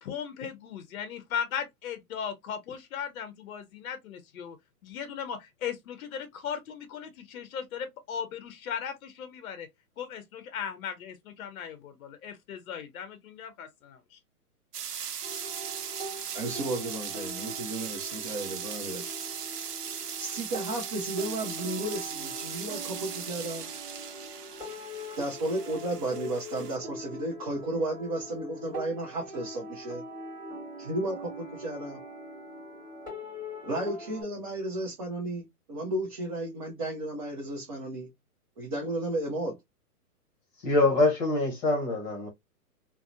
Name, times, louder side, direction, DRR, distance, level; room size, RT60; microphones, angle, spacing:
voice 1, 0.0-4.6 4.8-9.7 10.0-14.2, left 8 dB, 60° left, 0.6 m, -37 dB
sound 1, 14.7-26.8, right 8 dB, 85° right, 0.6 m, -38 dB
sound 2, 15.2-34.2, left 1 dB, 10° right, 1.0 m, -42 dB
voice 2, 16.3-19.0 20.2-23.7 25.2-30.0 30.8-32.0 33.6-38.1 38.6-39.6, right 1 dB, 25° right, 0.4 m, -33 dB
voice 3, 40.6-42.3, left 2 dB, 30° left, 0.8 m, -24 dB
2.7 x 2.0 x 2.3 m
hypercardioid pair, 125°, 46 cm